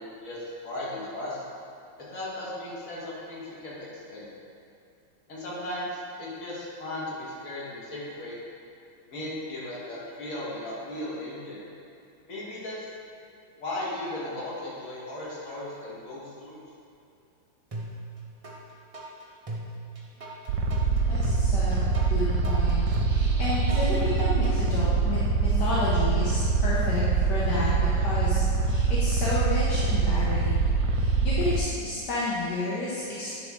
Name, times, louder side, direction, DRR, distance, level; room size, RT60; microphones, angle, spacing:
voice 1, 0.0-1.4 2.1-4.3 5.3-8.4 9.1-11.6 12.3-12.8 13.6-16.6, left 1 dB, 50° left, -7 dB, 1.8 m, -36 dB
sound 1, 17.7-18.6 18.9-24.6, right 2 dB, 50° right, 0.4 m, -38 dB
sound 2, 20.5-31.6, right 4 dB, 75° right, 1.1 m, -24 dB
voice 2, 21.1-30.6 30.9-33.4, left 2 dB, 70° left, -8 dB, 1.5 m, -31 dB
10.0 x 3.6 x 3.6 m, 2.6 s
omnidirectional pair, 1.9 m